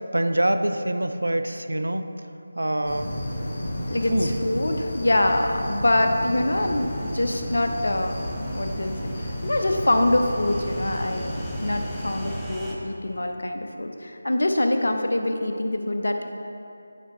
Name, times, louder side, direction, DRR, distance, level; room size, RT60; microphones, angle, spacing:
voice 1, 0.1-2.1 2.5-3.1 4.1-4.3, right 1 dB, 75° right, 8 dB, 0.6 m, -24 dB
sound 1, 2.8-12.3, equal, 40° left, 1.4 m, -33 dB
voice 2, 3.9-8.2 8.5-16.2, left 1 dB, 65° left, 5 dB, 0.8 m, -25 dB
sound 2, 6.5-12.7, equal, 5° left, 0.7 m, -38 dB
14.0 x 6.1 x 3.2 m, 2.7 s
figure-of-eight pair, 160°, 0 cm